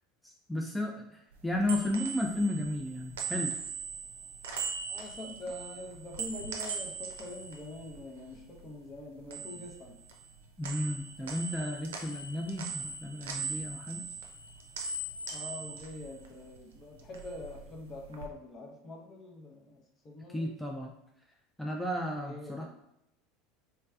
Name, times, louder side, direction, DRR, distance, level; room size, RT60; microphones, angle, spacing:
voice 1, 0.2-3.6 5.3-5.4 10.6-14.1 20.3-20.9 21.6-22.7, left 1 dB, 5° left, 0 dB, 0.4 m, -33 dB
sound 1, 1.3-8.7 9.0-10.4 10.6-16.6 16.9-18.3, right 4 dB, 80° right, 0.5 m, -40 dB
voice 2, 4.9-10.0 15.3-20.5 22.2-22.7, left 2 dB, 35° left, 1 dB, 0.7 m, -44 dB
3.3 x 3.2 x 2.3 m, 0.78 s
hypercardioid pair, 80°, 0 cm